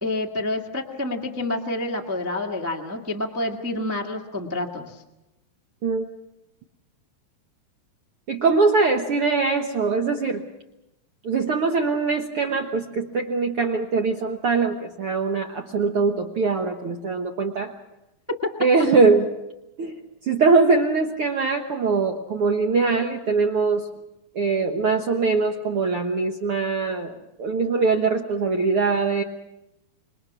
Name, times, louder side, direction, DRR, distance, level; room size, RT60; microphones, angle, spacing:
voice 1, 0.0-5.0, left 2 dB, 25° right, 1 dB, 0.3 m, -28 dB
voice 2, 8.3-10.4 11.2-17.7 18.6-19.3 19.8-20.0 20.3-23.9 24.3-29.2, right 4 dB, 65° right, 4 dB, 1.4 m, -22 dB
27.0 x 22.5 x 6.1 m, 0.92 s
omnidirectional pair, 4.1 m